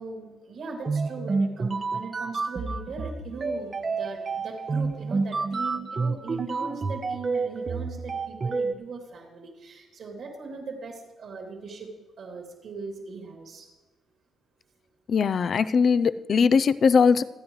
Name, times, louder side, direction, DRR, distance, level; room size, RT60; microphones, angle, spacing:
voice 1, 0.0-11.9 12.2-13.7, right 4 dB, 65° right, 1 dB, 3.0 m, -39 dB
sound 1, 0.8-8.7, right 4 dB, 35° right, 0.9 m, -29 dB
voice 2, 15.1-17.2, left 5 dB, 50° left, 14 dB, 0.5 m, -20 dB
27.0 x 9.5 x 3.2 m, 1.2 s
cardioid pair, 90°, 0 cm